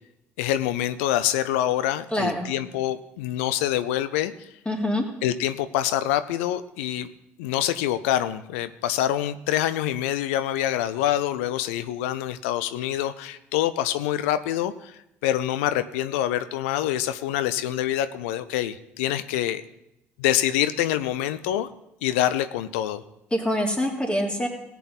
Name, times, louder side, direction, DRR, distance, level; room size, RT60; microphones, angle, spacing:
voice 1, 0.4-4.5 5.2-7.1 7.4-19.6 20.2-21.7 22.0-23.0, left 12 dB, 75° left, 13 dB, 0.5 m, -26 dB
voice 2, 2.1-2.5 4.6-5.0 23.3-24.5, equal, 15° left, 1 dB, 3.1 m, -25 dB
18.0 x 8.3 x 4.1 m, 0.85 s
hypercardioid pair, 55°, 7 cm